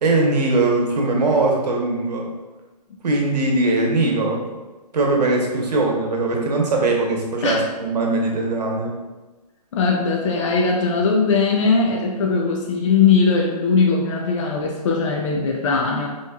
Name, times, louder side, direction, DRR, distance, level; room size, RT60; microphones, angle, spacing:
voice 1, 0.0-2.3 3.0-4.6 4.9-9.0, right 2 dB, 80° right, 0 dB, 1.0 m, -20 dB
voice 2, 9.7-16.1, left 4 dB, 50° left, 0 dB, 0.5 m, -19 dB
4.3 x 3.0 x 2.3 m, 1.2 s
hypercardioid pair, 160°, 21 cm